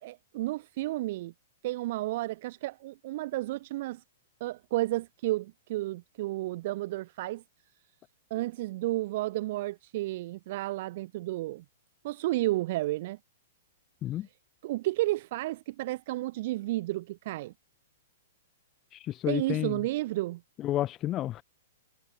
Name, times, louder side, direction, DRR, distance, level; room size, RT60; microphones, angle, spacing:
voice 1, 0.0-1.3 1.6-4.0 4.4-7.4 8.3-11.6 12.0-13.2 14.6-17.5 19.3-20.4, right 17 dB, 50° right, 1.2 m, -32 dB
voice 2, 18.9-19.8 20.6-21.4, left 13 dB, 30° left, 0.5 m, -31 dB
hypercardioid pair, 115°, 0 cm